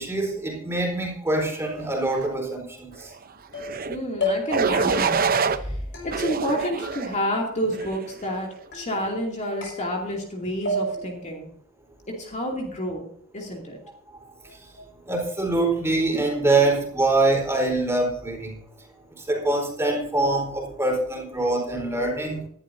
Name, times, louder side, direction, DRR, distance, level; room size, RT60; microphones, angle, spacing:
voice 1, 0.0-3.1 14.1-14.8 15.1-18.6 19.1-22.5, right 2 dB, 10° right, 0 dB, 4.1 m, -24 dB
sound 1, 3.5-3.9 4.2-4.6 4.9-5.4 5.9-6.5 6.8-7.5 7.8-8.3 8.7-9.2 9.6-10.3 10.7-11.2, left 1 dB, 55° left, 6.5 m, -32 dB
sound 2, 3.6-4.0 4.5-5.6 6.1-7.1 7.7-8.1, right 5 dB, 45° right, 0.8 m, -25 dB
voice 2, 3.9-5.8 6.0-11.5 12.1-13.8, equal, 35° left, 0 dB, 2.7 m, -29 dB
19.0 x 11.5 x 2.7 m, 0.66 s
head